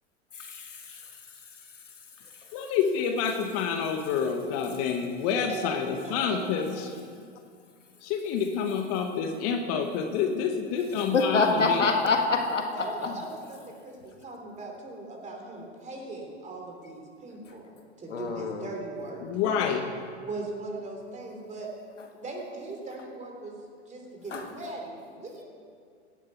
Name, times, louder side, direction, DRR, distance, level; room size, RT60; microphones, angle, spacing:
voice 1, 0.4-1.0 11.0-12.7 18.1-18.7 19.4-19.8 24.3-24.4, left 3 dB, 90° left, 3 dB, 1.7 m, -26 dB
voice 2, 2.5-6.9 8.0-11.9 19.2-19.9, left 6 dB, 45° left, 5 dB, 1.3 m, -28 dB
voice 3, 5.5-7.0 8.6-8.7 12.7-19.2 20.2-21.7 22.1-23.6 23.9-25.4, right 2 dB, 20° right, 1 dB, 3.1 m, -39 dB
16.5 x 11.0 x 4.6 m, 2.2 s
hypercardioid pair, 100°, 36 cm